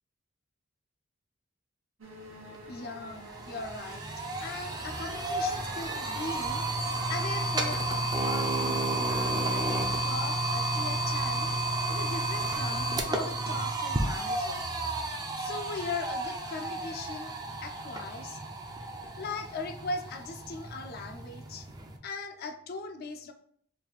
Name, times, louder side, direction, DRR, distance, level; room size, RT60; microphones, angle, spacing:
sound 1, 2.0-12.2, right 1 dB, 80° right, 0.9 m, -49 dB
sound 2, 2.5-2.6 3.0-22.0, right 2 dB, 20° right, 0.4 m, -32 dB
voice 1, 2.7-4.0 4.4-6.6 7.1-8.8 9.1-11.5 11.9-14.6 15.4-17.3 17.6-18.4 19.2-21.7 22.0-23.3, left 3 dB, 50° left, 6 dB, 0.4 m, -39 dB
3.3 x 2.5 x 3.9 m, 0.62 s
head